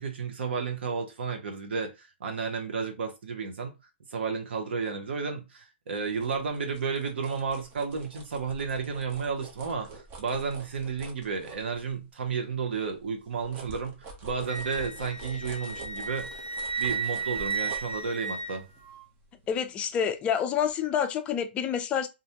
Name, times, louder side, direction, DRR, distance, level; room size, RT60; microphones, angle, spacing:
voice 1, 0.0-3.7 4.1-16.3 16.8-18.6, right 5 dB, 70° right, 0.8 m, -32 dB
sound 1, 6.2-12.2 12.7-20.2 20.6-20.7, right 3 dB, 30° right, 0.7 m, -47 dB
Wind instrument woodwind instrument, 14.5-19.0, right 4 dB, 45° right, 1.0 m, -34 dB
voice 2, 19.5-22.1, left 8 dB, 20° left, 0.3 m, -28 dB
2.5 x 2.1 x 2.8 m
hypercardioid pair, 140°, 6 cm